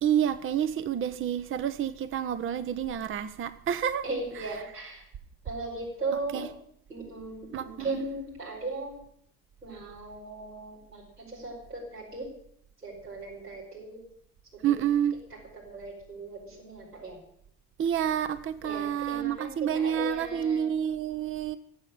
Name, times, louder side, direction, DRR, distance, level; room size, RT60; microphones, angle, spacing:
voice 1, 0.0-4.1 4.4-4.5 6.3-6.5 7.5-8.0 14.6-15.2 17.8-21.6, right 9 dB, 25° right, 0.9 m, -29 dB
voice 2, 4.0-5.0 5.4-6.5 6.9-9.0 9.6-12.3 12.8-14.0 14.7-14.9 15.5-17.2 18.6-20.7, right 2 dB, 90° right, 5.3 m, -37 dB
15.5 x 8.5 x 8.9 m
figure-of-eight pair, 65°, 46 cm